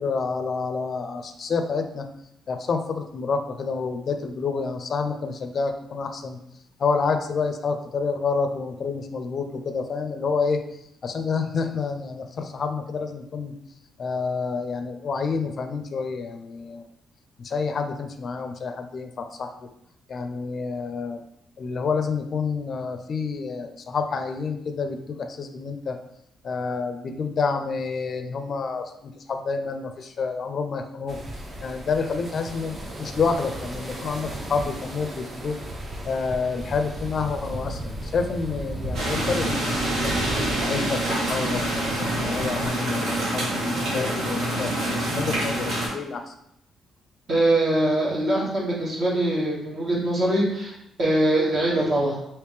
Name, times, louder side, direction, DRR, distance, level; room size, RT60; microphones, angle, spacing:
voice 1, 0.0-2.1 2.5-6.4 6.8-10.6 11.0-13.5 14.0-16.8 17.4-19.7 20.1-21.2 21.6-26.0 26.4-31.2 31.6-35.6 36.1-40.2 40.6-46.3, left 4 dB, 50° left, 7 dB, 0.4 m, -28 dB
sound 1, 31.1-42.7, right 1 dB, 35° right, 0.7 m, -35 dB
sound 2, 38.9-45.9, right 1 dB, 70° right, 1.3 m, -26 dB
voice 2, 47.3-50.7 51.0-52.2, right 1 dB, 50° right, -5 dB, 1.5 m, -22 dB
3.3 x 2.9 x 3.2 m, 0.78 s
cardioid pair, 90°, 0 cm